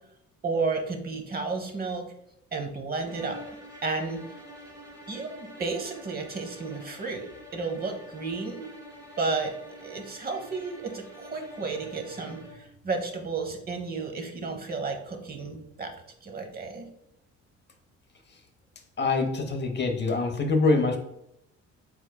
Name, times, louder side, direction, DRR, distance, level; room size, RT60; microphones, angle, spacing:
voice 1, 0.4-2.1 2.5-3.6 3.8-4.2 5.1-8.7 9.2-9.5 9.8-15.9 16.2-16.9, right 4 dB, 30° right, 4 dB, 0.8 m, -32 dB
sound 1, 3.0-12.7, equal, 10° right, 1.4 m, -47 dB
voice 2, 19.0-21.0, left 3 dB, 40° left, 5 dB, 0.6 m, -24 dB
4.5 x 3.7 x 2.2 m, 0.78 s
cardioid pair, 95°, 29 cm